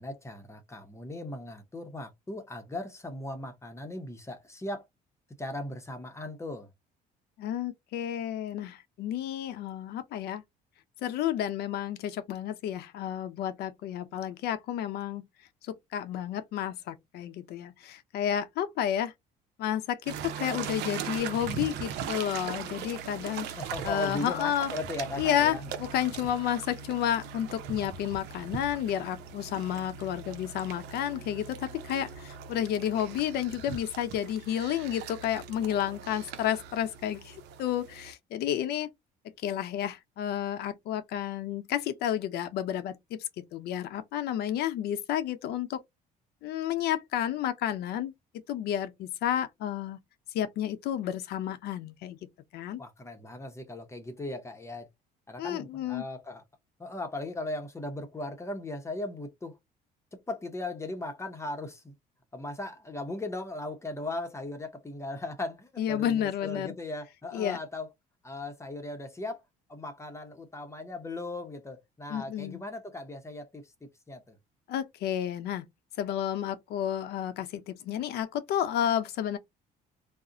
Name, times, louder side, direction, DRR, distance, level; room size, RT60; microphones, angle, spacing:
voice 1, 0.0-4.8 5.4-6.7 23.6-25.6 52.8-54.9 55.3-56.4 56.8-59.6 60.3-61.9 62.3-67.9 68.2-69.4 69.7-74.4, left 2 dB, 15° left, 0.7 m, -38 dB
voice 2, 7.4-10.4 11.0-15.3 15.7-19.1 19.6-23.5 23.8-24.7 25.2-38.9 39.4-43.2 43.5-45.8 46.4-48.1 48.5-50.0 50.3-52.2 52.5-52.8 55.4-56.0 65.8-66.8 67.3-67.6 72.1-72.6 74.7-75.6 76.0-79.4, left 10 dB, 75° left, 0.6 m, -31 dB
sound 1, 20.1-38.1, right 7 dB, 85° right, 0.5 m, -40 dB
2.4 x 2.0 x 3.7 m
cardioid pair, 110°, 17 cm